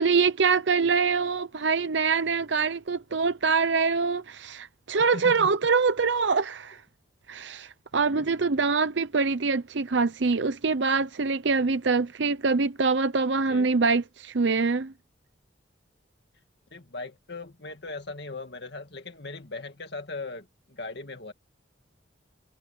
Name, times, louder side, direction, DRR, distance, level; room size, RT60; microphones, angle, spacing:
voice 1, 0.0-6.8 7.3-14.9, right 4 dB, 75° right, 0.7 m, -24 dB
voice 2, 5.0-5.5 8.2-8.3 13.5-13.7 16.7-21.3, left 3 dB, 60° left, 2.0 m, -39 dB
head